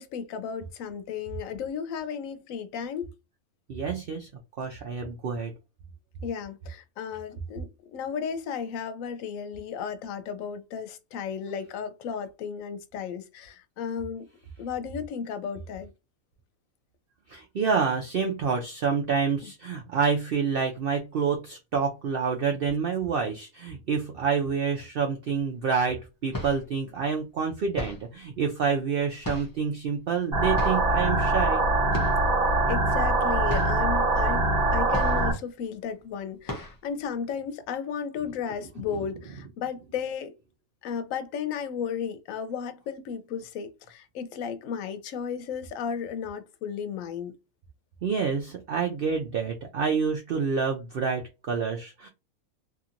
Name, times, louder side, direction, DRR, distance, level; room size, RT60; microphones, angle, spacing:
voice 1, 0.0-3.1 6.2-14.3 14.6-15.9 19.4-19.5 32.7-40.3 40.8-47.3, left 7 dB, 70° left, 0.9 m, -34 dB
voice 2, 3.7-4.3 4.6-5.5 17.3-31.6 48.0-52.1, right 6 dB, 75° right, 0.5 m, -28 dB
sound 1, 25.4-25.5 26.1-26.8 27.7-28.2 29.2-29.7 30.5-30.9 31.9-32.3 32.6-32.7 33.1-33.2 33.5-33.9 34.9-35.5 35.9-36.0 36.4-36.9, left 1 dB, 35° left, 0.3 m, -36 dB
sound 2, 30.3-35.3, right 2 dB, 45° right, 1.0 m, -23 dB
2.8 x 2.5 x 2.5 m
omnidirectional pair, 1.5 m